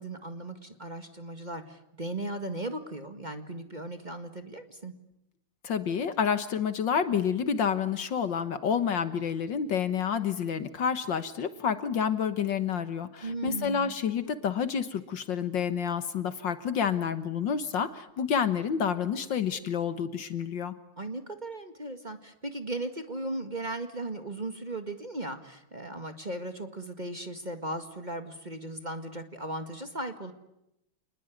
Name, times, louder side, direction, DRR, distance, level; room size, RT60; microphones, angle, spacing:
voice 1, 0.0-4.9 13.2-13.9 21.0-30.3, right 2 dB, 20° right, 7 dB, 1.8 m, -37 dB
voice 2, 5.6-20.7, left 7 dB, 60° left, 11 dB, 1.8 m, -29 dB
28.5 x 20.5 x 9.3 m, 0.85 s
omnidirectional pair, 2.4 m